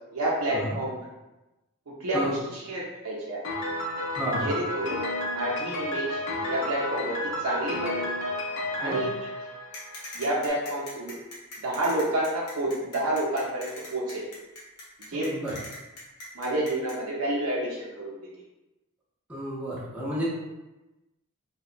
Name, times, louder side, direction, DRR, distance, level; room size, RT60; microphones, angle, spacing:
voice 1, 0.1-1.0 1.9-3.5 4.4-5.0 5.3-6.2 6.4-8.1 8.8-9.1 10.1-11.1 11.6-14.2 15.1-15.6 16.3-18.3, right 1 dB, 75° right, -4 dB, 0.5 m, -29 dB
Piano, 3.4-10.3, left 1 dB, 55° left, 0.4 m, -32 dB
voice 2, 4.1-4.5 8.8-9.1 15.1-15.6 19.3-20.3, right 1 dB, 5° right, -7 dB, 0.5 m, -31 dB
sound 1, 9.7-17.0, left 2 dB, 85° left, 0.8 m, -41 dB
2.7 x 2.2 x 2.4 m, 1.0 s
head